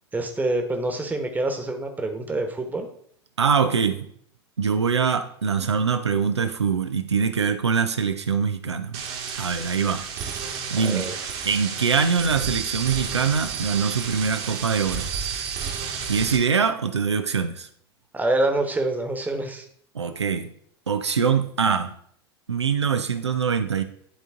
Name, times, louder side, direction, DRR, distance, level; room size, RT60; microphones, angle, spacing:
voice 1, 0.1-2.9 10.8-11.1 18.1-19.7, right 2 dB, 10° right, 5 dB, 1.2 m, -26 dB
voice 2, 3.4-4.1 4.6-9.0 9.4-10.1 10.7-11.1 11.5-15.1 16.1-17.7 19.9-20.5 20.9-22.0 22.5-23.8, right 6 dB, 85° right, 8 dB, 0.5 m, -23 dB
sound 1, 8.9-16.4, right 6 dB, 45° right, 1.4 m, -31 dB
11.0 x 3.8 x 3.6 m, 0.64 s
figure-of-eight pair, 80°, 14 cm